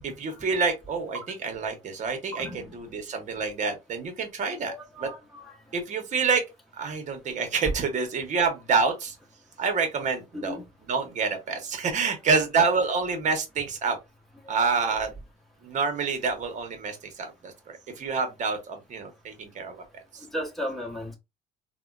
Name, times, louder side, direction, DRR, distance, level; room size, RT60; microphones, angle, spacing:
voice 1, 0.0-4.7 5.0-5.1 5.7-6.4 6.8-9.2 9.6-14.0 14.5-15.1 15.6-19.8 20.1-20.2, right 5 dB, 45° right, 1.0 m, -27 dB
voice 2, 2.3-2.7 4.7-5.5 10.3-10.6 14.5-14.7 20.3-21.2, left 1 dB, ahead, 1.0 m, -35 dB
3.5 x 2.2 x 2.4 m
cardioid pair, 110°, 17 cm